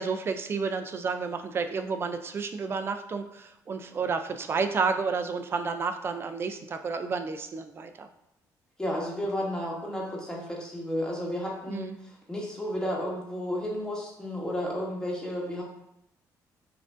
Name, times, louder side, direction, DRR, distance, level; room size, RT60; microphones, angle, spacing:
voice 1, 0.0-8.1 11.7-11.9, right 5 dB, 35° right, 8 dB, 0.3 m, -31 dB
voice 2, 8.8-15.6, equal, 10° left, -3 dB, 1.0 m, -32 dB
5.5 x 2.5 x 2.5 m, 0.81 s
cardioid pair, 125°, 7 cm